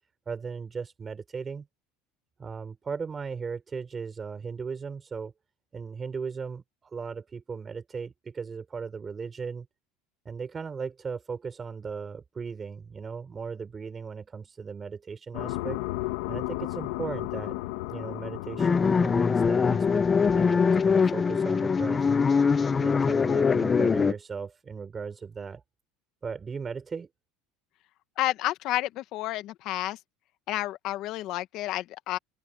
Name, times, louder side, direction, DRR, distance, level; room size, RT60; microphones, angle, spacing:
voice 1, 0.3-1.7 2.4-5.3 5.7-9.7 10.2-15.8 16.3-17.5 17.9-20.1 20.3-22.0 22.7-25.6 26.2-27.1, right 5 dB, 20° right, 6.5 m, -37 dB
sound 1, 15.3-20.8, left 19 dB, 80° left, 1.4 m, -35 dB
sound 2, 18.6-24.1, left 5 dB, 20° left, 0.7 m, -23 dB
voice 2, 28.2-30.0 30.5-32.2, left 15 dB, 50° left, 1.4 m, -30 dB
open air
supercardioid pair, 135°, 0 cm